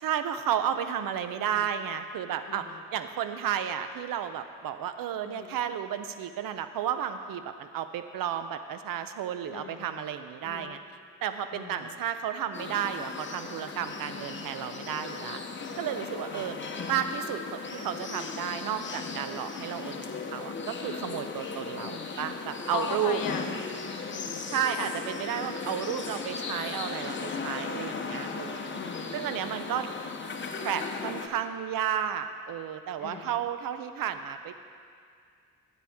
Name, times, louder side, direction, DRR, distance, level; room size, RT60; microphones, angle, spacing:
voice 1, 0.0-10.8 11.2-15.4 15.8-16.6 16.9-23.2 24.5-28.6 29.1-29.9 30.6-34.5, right 9 dB, 80° right, 10 dB, 0.6 m, -32 dB
voice 2, 1.4-1.7 2.5-2.8 5.2-5.6 9.5-10.0 10.4-10.8 11.5-12.0 14.0-14.1 16.3-17.1 21.7-22.1 22.7-23.6 24.0-24.9 28.7-29.2 33.0-33.3, left 6 dB, 80° left, 5 dB, 1.0 m, -40 dB
sound 1, 12.5-31.3, left 4 dB, 35° left, 0.9 m, -37 dB
13.0 x 8.9 x 3.5 m, 2.2 s
cardioid pair, 90°, 34 cm